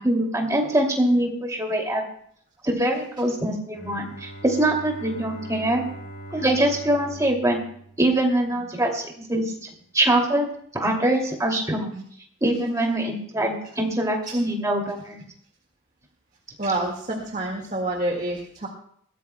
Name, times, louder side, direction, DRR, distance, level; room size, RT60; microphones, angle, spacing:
voice 1, 0.0-2.0 2.6-5.8 6.3-7.6 8.0-9.5 9.9-10.5 10.7-12.0 12.4-15.2, right 1 dB, 15° right, 0 dB, 2.5 m, -23 dB
Bowed string instrument, 3.7-8.7, right 1 dB, 60° left, 2.5 m, -41 dB
voice 2, 16.6-18.7, right 2 dB, 35° right, 0 dB, 1.8 m, -28 dB
21.5 x 16.0 x 2.2 m, 0.63 s
head